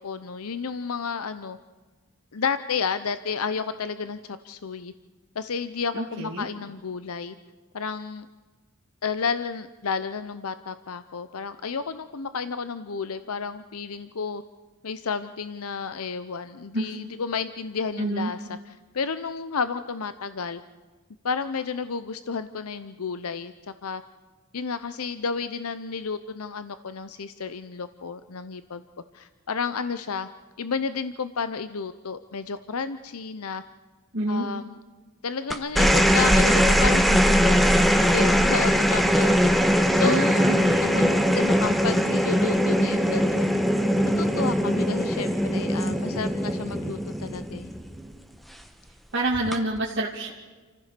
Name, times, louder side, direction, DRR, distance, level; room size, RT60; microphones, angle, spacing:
voice 1, 0.0-1.6 2.3-4.9 5.3-7.4 7.7-8.3 9.0-14.4 14.8-20.6 21.2-23.5 23.8-24.0 24.5-28.8 29.1-30.3 30.6-33.6 34.3-34.8 35.2-40.4 40.9-43.6 44.2-47.7, left 5 dB, 85° left, 12 dB, 0.7 m, -31 dB
voice 2, 5.9-6.5 16.7-16.9 18.0-18.3 34.1-34.5 40.0-41.2 49.1-50.3, right 1 dB, 50° right, -5 dB, 2.6 m, -28 dB
sound 1, 35.5-48.1 49.3-49.8, equal, ahead, 1.0 m, -21 dB
28.5 x 15.0 x 6.8 m, 1.4 s
head